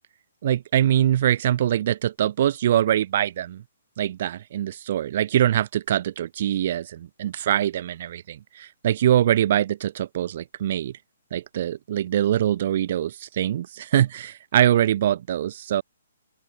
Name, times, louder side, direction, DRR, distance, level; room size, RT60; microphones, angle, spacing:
voice 1, 0.4-3.6 4.0-10.9 11.3-15.8, right 11 dB, 50° right, 0.4 m, -23 dB
open air
hypercardioid pair, 140°, 0 cm